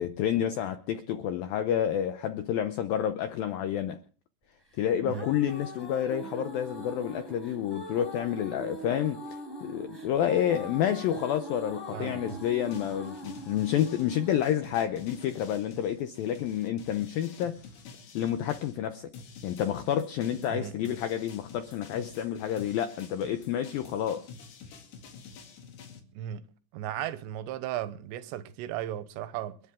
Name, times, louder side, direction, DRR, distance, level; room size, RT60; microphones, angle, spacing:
voice 1, 0.0-4.0 4.8-17.8 18.1-19.1 19.4-24.3, left 10 dB, 80° left, 2.1 m, -29 dB
sound 1, 4.8-15.8, right 1 dB, 5° right, 3.9 m, -42 dB
voice 2, 11.9-12.4 20.5-20.9 26.1-29.6, right 12 dB, 80° right, 3.1 m, -36 dB
sound 2, 12.3-18.8 19.1-26.0, left 5 dB, 65° left, 4.1 m, -49 dB
29.0 x 10.5 x 3.7 m
omnidirectional pair, 5.2 m